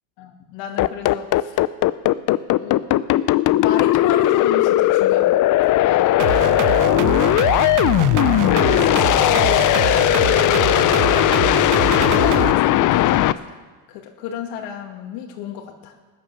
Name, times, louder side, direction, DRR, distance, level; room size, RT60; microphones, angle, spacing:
voice 1, 0.2-1.6 2.6-2.8 3.5-5.5 5.8-6.8 8.4-11.2 12.1-13.6 13.9-15.9, left 8 dB, 70° left, 2 dB, 2.3 m, -32 dB
sound 1, 0.8-13.3, left 14 dB, 40° left, 0.6 m, -17 dB
sound 2, 6.2-12.5, right 11 dB, 40° right, 0.8 m, -25 dB
16.0 x 9.9 x 6.6 m, 1.4 s
supercardioid pair, 105°, 47 cm